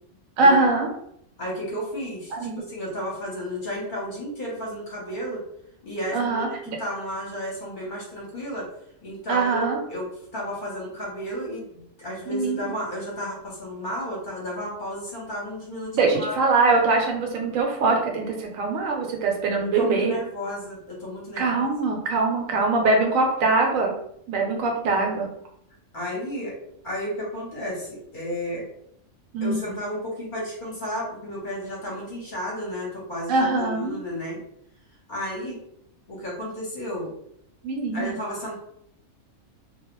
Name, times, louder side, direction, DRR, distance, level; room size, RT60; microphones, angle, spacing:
voice 1, 0.4-0.9 2.3-2.6 6.1-6.8 9.3-9.8 12.3-12.7 15.9-20.1 21.4-23.9 24.3-25.3 29.3-29.6 33.3-34.0 37.6-38.1, right 3 dB, 80° right, 1 dB, 1.0 m, -22 dB
voice 2, 1.4-5.4 5.8-8.7 9.0-16.3 19.6-21.7 25.9-26.5 26.8-28.7 29.4-34.4 35.1-35.6 36.1-37.1 37.9-38.5, equal, 45° left, -5 dB, 0.8 m, -32 dB
2.3 x 2.1 x 2.9 m, 0.73 s
omnidirectional pair, 1.4 m